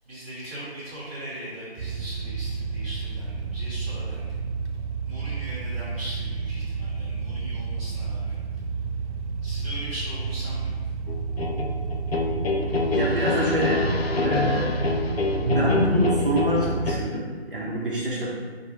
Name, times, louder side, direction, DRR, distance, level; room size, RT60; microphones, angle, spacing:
voice 1, 0.0-4.3 5.0-8.4 9.4-10.8, equal, 10° right, -20 dB, 1.3 m, -39 dB
sound 1, 1.8-17.1, right 5 dB, 85° right, 0.5 m, -31 dB
sound 2, 11.1-16.9, left 3 dB, 65° left, 0.6 m, -26 dB
voice 2, 12.9-13.9 14.2-14.7 15.4-18.3, right 1 dB, 55° right, -6 dB, 0.9 m, -25 dB
5.1 x 2.3 x 4.0 m, 1.5 s
figure-of-eight pair, 175°, 33 cm